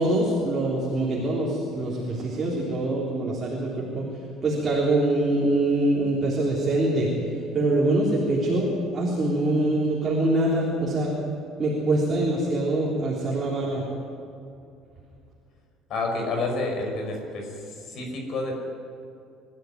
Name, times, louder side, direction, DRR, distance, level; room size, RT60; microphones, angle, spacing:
voice 1, 0.0-4.1 4.4-7.1 7.5-11.1 11.6-13.9, right 1 dB, 20° right, -4 dB, 3.7 m, -24 dB
voice 2, 15.9-17.5 17.9-18.5, left 2 dB, 45° left, 2 dB, 5.6 m, -29 dB
24.5 x 14.0 x 9.5 m, 2.5 s
cardioid pair, 165°, 0 cm